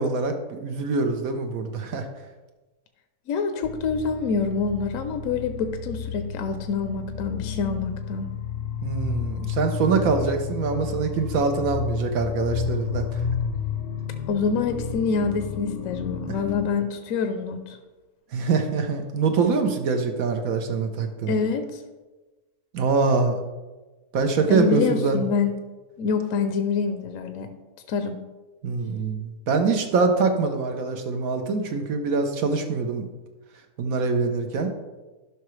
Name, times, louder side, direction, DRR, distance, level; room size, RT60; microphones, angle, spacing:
voice 1, 0.0-2.1 8.8-13.1 16.3-16.4 18.3-21.4 22.7-23.4 24.1-25.2 28.6-33.0 33.8-34.7, right 4 dB, 70° right, 5 dB, 1.2 m, -24 dB
voice 2, 3.3-8.3 14.3-17.8 21.3-21.8 24.5-25.5 26.0-27.5 27.9-28.2, left 5 dB, 65° left, 7 dB, 0.9 m, -26 dB
sound 1, 3.6-16.7, left 5 dB, 85° left, 0.5 m, -31 dB
11.5 x 5.7 x 3.2 m, 1.2 s
omnidirectional pair, 1.6 m